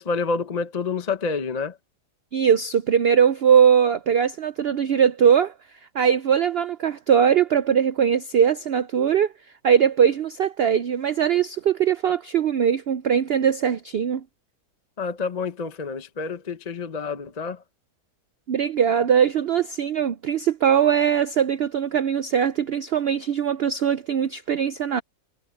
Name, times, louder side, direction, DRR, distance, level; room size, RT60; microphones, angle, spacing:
voice 1, 0.0-1.8 15.0-17.6, left 4 dB, 35° left, 0.7 m, -28 dB
voice 2, 2.3-5.5 5.9-9.3 9.6-14.2 18.5-25.0, right 8 dB, 85° right, 0.5 m, -20 dB
omnidirectional pair, 1.7 m